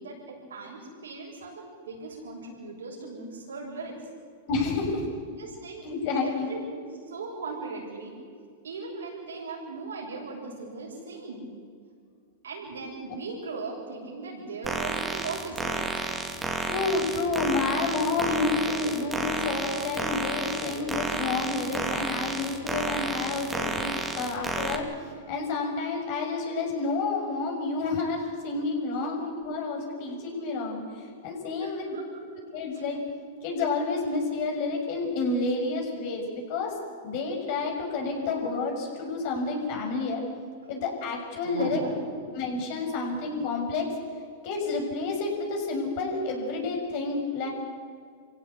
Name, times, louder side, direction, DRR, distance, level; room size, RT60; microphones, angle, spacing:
voice 1, 0.0-4.1 5.3-5.9 6.2-8.2 8.6-11.5 12.4-15.9 28.9-29.1 31.6-32.3 32.7-32.8 41.4-42.0 42.8-43.0, right 3 dB, 90° right, -3 dB, 7.0 m, -38 dB
voice 2, 4.5-5.1 5.8-6.5 16.6-24.8 25.3-30.8 31.2-31.9 32.5-33.0 33.4-36.7 37.0-40.2 40.7-41.8 42.4-43.9 44.4-47.5, left 3 dB, 55° left, 1 dB, 6.9 m, -29 dB
sound 1, 14.6-24.8, right 2 dB, 10° right, 2.7 m, -31 dB
26.0 x 16.0 x 8.4 m, 2.1 s
hypercardioid pair, 115°, 0 cm